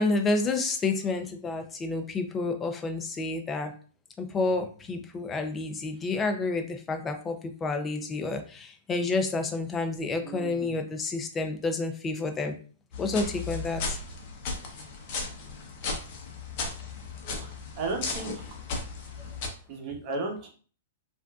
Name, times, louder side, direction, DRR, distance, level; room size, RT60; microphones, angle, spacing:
voice 1, 0.0-3.7 4.2-12.5 13.0-14.0, left 3 dB, 20° left, 7 dB, 0.5 m, -29 dB
voice 2, 10.2-10.9 17.2-18.5 19.7-20.5, right 3 dB, 45° right, 1 dB, 1.0 m, -35 dB
sound 1, 12.9-19.5, left 3 dB, 50° left, 0.8 m, -36 dB
3.4 x 2.5 x 2.3 m, 0.40 s
hypercardioid pair, 125°, 0 cm